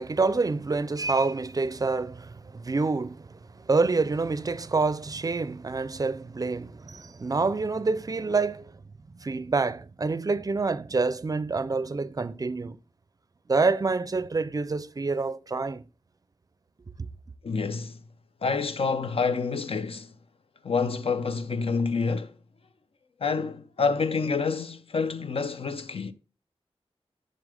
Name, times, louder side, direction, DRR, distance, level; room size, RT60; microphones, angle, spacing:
voice 1, 0.0-8.7 9.2-12.8 13.5-15.8, right 3 dB, 35° right, 0.4 m, -27 dB
voice 2, 17.4-18.0 18.4-20.1 20.6-22.3 23.2-26.1, left 4 dB, 65° left, 0.7 m, -28 dB
7.2 x 6.6 x 3.4 m
wide cardioid pair, 100°, 11 cm